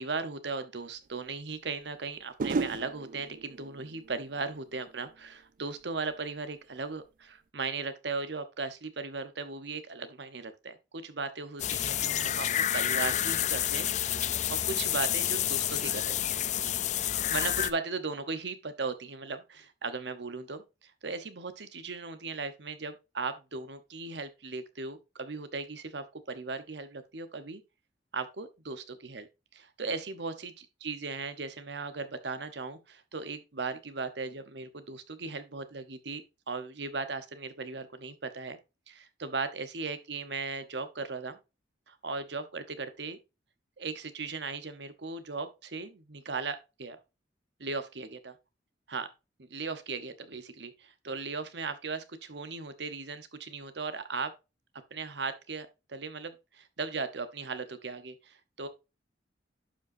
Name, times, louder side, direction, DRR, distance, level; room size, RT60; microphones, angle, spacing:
voice 1, 0.0-16.2 17.3-27.6 28.1-29.3 29.5-38.6 38.9-41.4 41.9-43.2 43.8-47.0 47.6-48.4 48.9-49.1 49.4-54.3 54.9-58.7, right 4 dB, 70° right, 1.0 m, -37 dB
sound 1, 1.0-1.1 2.4-5.5 5.8-6.3, right 4 dB, 50° right, 0.4 m, -37 dB
sound 2, 11.6-17.7, left 11 dB, 40° left, 0.4 m, -29 dB
11.5 x 5.3 x 2.7 m
head